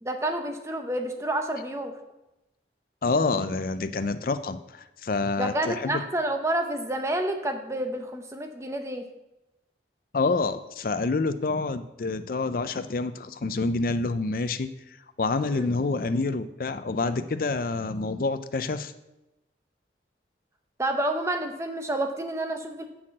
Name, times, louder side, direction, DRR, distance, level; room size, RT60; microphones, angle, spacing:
voice 1, 0.0-1.9 5.4-9.0 15.5-15.7 20.8-22.8, right 1 dB, 15° right, 5 dB, 0.7 m, -29 dB
voice 2, 3.0-6.0 10.1-14.7 15.2-18.9, left 3 dB, 50° left, 11 dB, 0.5 m, -27 dB
6.6 x 5.8 x 7.3 m, 0.95 s
head